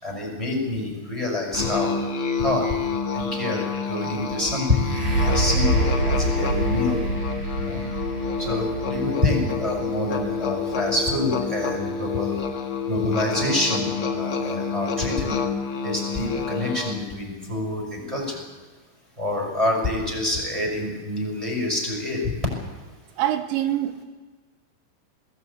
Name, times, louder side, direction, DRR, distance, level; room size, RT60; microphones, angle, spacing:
voice 1, 0.0-1.9 2.4-2.6 3.1-4.9 5.2-7.0 7.6-7.8 8.4-12.3 12.9-15.4 15.8-18.4 19.2-22.3, left 2 dB, 5° right, 0 dB, 5.1 m, -26 dB
Musical instrument, 1.5-17.1, left 5 dB, 80° left, 1.2 m, -28 dB
sound 1, 4.8-12.5 13.2-13.3, right 2 dB, 40° right, 5.1 m, -27 dB
voice 2, 23.2-24.0, right 12 dB, 75° right, 9 dB, 3.1 m, -24 dB
21.5 x 15.5 x 8.4 m, 1.3 s
omnidirectional pair, 5.7 m